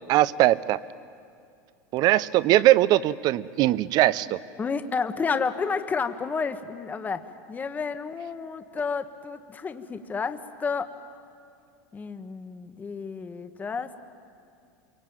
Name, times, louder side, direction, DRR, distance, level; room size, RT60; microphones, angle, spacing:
voice 1, 0.1-0.8 1.9-4.4, right 15 dB, 45° right, 18 dB, 0.7 m, -20 dB
voice 2, 4.6-10.9 11.9-13.9, left 5 dB, 20° left, 9 dB, 1.2 m, -31 dB
27.5 x 23.5 x 9.0 m, 2.4 s
supercardioid pair, 130°, 9 cm